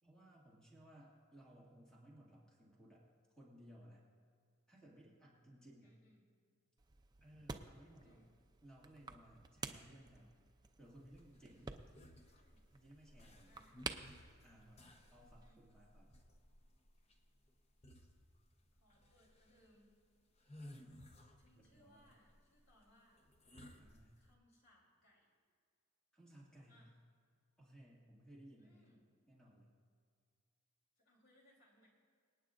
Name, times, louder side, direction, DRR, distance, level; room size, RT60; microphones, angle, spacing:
voice 1, 0.0-3.0 3.3-4.0 4.7-5.9 7.2-8.2 8.6-10.4 10.8-11.7 12.7-13.6 14.4-16.2 20.6-21.0 21.5-22.1 23.8-24.1 26.1-26.9 27.6-28.9 29.3-29.7, right 1 dB, 5° left, -5 dB, 2.1 m, -61 dB
voice 2, 5.8-6.3 8.0-8.3 12.2-12.7 13.4-13.9 15.4-15.6 18.7-20.0 21.4-23.3 24.2-25.3 26.7-27.0 28.6-29.0 31.0-31.9, equal, 60° left, -3 dB, 3.5 m, -70 dB
sound 1, 6.8-15.5, right 4 dB, 20° right, 0.4 m, -52 dB
sound 2, 10.9-24.3, left 1 dB, 30° left, 0.9 m, -60 dB
26.5 x 9.3 x 2.5 m, 2.1 s
head